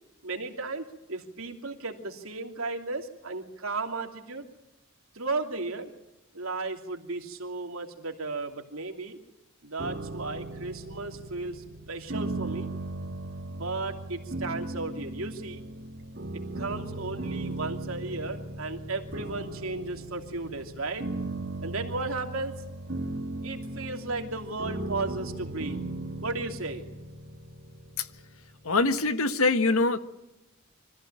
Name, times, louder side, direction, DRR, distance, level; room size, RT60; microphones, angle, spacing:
voice 1, 0.2-4.5 5.1-5.9 6.3-9.2 9.6-12.7 13.5-15.6 16.6-21.1 21.6-22.6 23.4-25.8 26.2-26.8, right 3 dB, 80° right, 4 dB, 2.9 m, -35 dB
sound 1, 9.8-28.7, right 2 dB, 55° right, 2.5 m, -37 dB
voice 2, 28.6-30.0, left 3 dB, 90° left, 10 dB, 1.5 m, -24 dB
25.0 x 15.0 x 9.0 m, 0.99 s
head